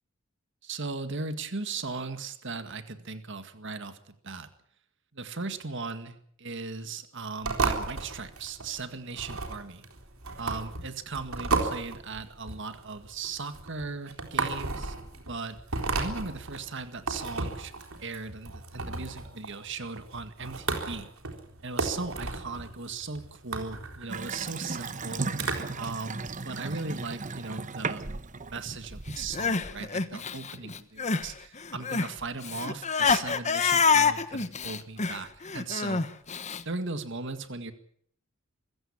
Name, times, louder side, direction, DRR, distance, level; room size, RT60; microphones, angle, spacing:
voice 1, 0.6-4.0 4.2-4.5 5.1-9.8 10.4-15.6 16.0-17.7 18.0-21.1 21.6-25.5 25.8-28.1 28.3-36.0 36.7-37.7, right 4 dB, 60° right, 9 dB, 1.9 m, -38 dB
sound 1, 7.4-25.9, right 3 dB, 80° right, 4.0 m, -34 dB
Water tap faucet / Sink (filling or washing) / Bathtub (filling or washing), 24.1-29.6, right 3 dB, 35° right, 1.0 m, -36 dB
Crying sobbing, 29.1-31.3 31.6-36.6, left 5 dB, 35° left, 1.2 m, -27 dB
25.0 x 15.5 x 8.6 m, 0.64 s
head